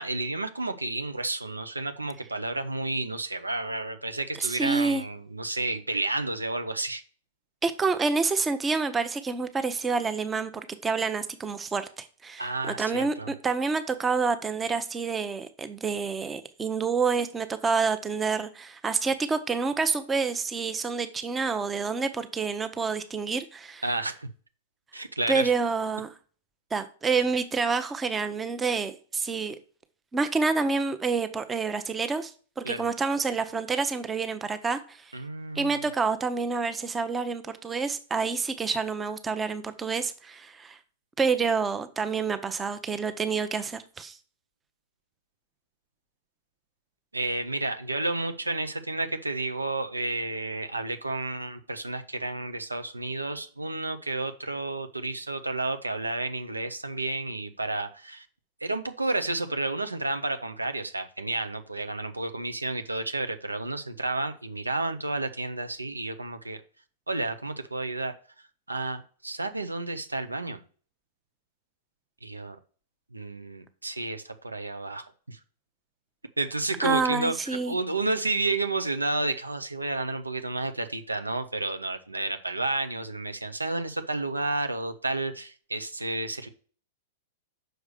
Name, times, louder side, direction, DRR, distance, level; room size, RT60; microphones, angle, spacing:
voice 1, 0.0-7.0 12.4-13.3 23.8-24.3 24.9-25.5 32.6-32.9 35.1-35.8 47.1-58.3 58.6-66.6 67.1-68.1 68.7-70.6 72.2-72.6 73.1-75.4 76.4-77.3 77.7-86.5, right 2 dB, 90° right, 0.9 m, -31 dB
voice 2, 4.4-5.0 7.6-23.8 25.3-26.1 26.7-29.6 30.1-32.3 32.6-35.0 35.5-40.8 41.2-44.2 76.8-77.7, right 4 dB, 15° right, 0.8 m, -28 dB
6.4 x 4.8 x 6.6 m
figure-of-eight pair, 100°, 0 cm